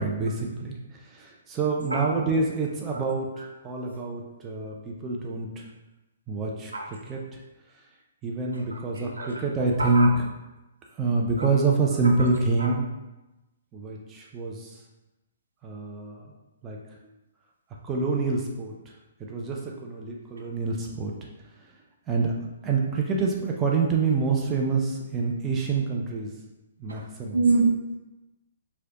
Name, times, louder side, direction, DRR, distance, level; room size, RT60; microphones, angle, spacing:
voice 1, 0.0-5.7 6.3-7.4 8.2-10.1 10.9-12.8 13.7-14.8 15.6-16.3 16.6-16.8 17.8-18.8 19.2-21.1 22.1-22.3 22.6-26.3 26.8-27.4, right 3 dB, 20° right, -1 dB, 0.5 m, -27 dB
voice 2, 8.9-9.3 9.8-10.1 11.4-11.5 12.6-12.7 26.9-27.0 27.3-27.8, right 3 dB, 75° right, 0 dB, 0.7 m, -25 dB
4.7 x 2.2 x 2.9 m, 1.0 s
figure-of-eight pair, 125°, 0 cm